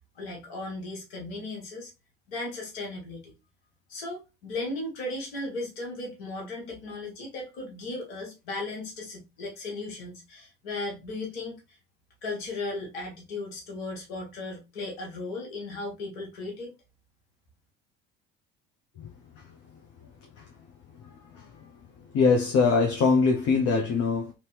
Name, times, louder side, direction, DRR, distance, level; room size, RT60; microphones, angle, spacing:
voice 1, 0.1-1.9 2.3-3.3 3.9-11.8 12.2-16.7, left 2 dB, 85° left, 1.3 m, -36 dB
voice 2, 22.1-24.3, left 4 dB, 50° left, 0.8 m, -22 dB
2.9 x 2.8 x 3.2 m
hypercardioid pair, 65°, 30 cm